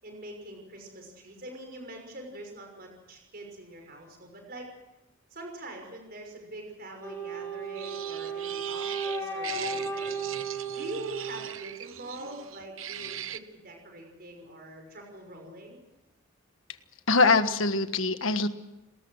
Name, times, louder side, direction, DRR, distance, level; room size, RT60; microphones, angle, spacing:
voice 1, 0.0-4.7 5.3-15.8, right 1 dB, 45° right, 3 dB, 6.0 m, -44 dB
Wind instrument woodwind instrument, 7.0-12.1, right 3 dB, 10° left, 6.5 m, -35 dB
sound 1, 7.7-13.4, right 9 dB, 70° right, 1.1 m, -39 dB
voice 2, 17.1-18.5, left 3 dB, 70° left, 9 dB, 1.5 m, -23 dB
30.0 x 21.0 x 6.5 m, 0.96 s
head